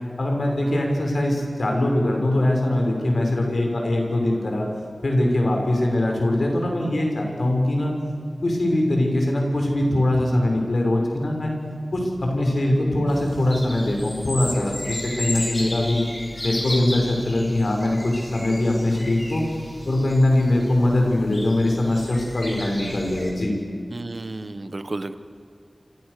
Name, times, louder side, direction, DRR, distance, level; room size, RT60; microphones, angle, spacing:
voice 1, 0.2-4.6 5.0-7.9 8.4-11.5 11.9-16.0 16.4-19.4 19.9-23.6, left 1 dB, 80° left, 1 dB, 6.3 m, -22 dB
sound 1, 13.1-23.3, left 1 dB, 35° left, 6.6 m, -34 dB
voice 2, 23.9-25.1, right 2 dB, 65° right, 11 dB, 1.4 m, -32 dB
27.5 x 26.5 x 6.9 m, 2.3 s
wide cardioid pair, 45°, 0 cm